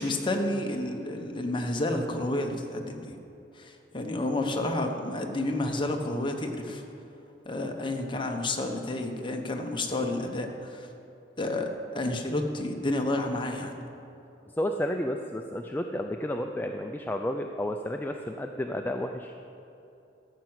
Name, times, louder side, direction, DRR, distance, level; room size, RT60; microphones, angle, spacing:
voice 1, 0.0-3.1 3.5-6.8 7.4-10.9 11.4-13.7, left 1 dB, 25° left, 3 dB, 1.1 m, -30 dB
voice 2, 14.6-19.3, left 1 dB, 10° left, 4 dB, 0.4 m, -31 dB
13.5 x 5.9 x 8.0 m, 2.8 s
head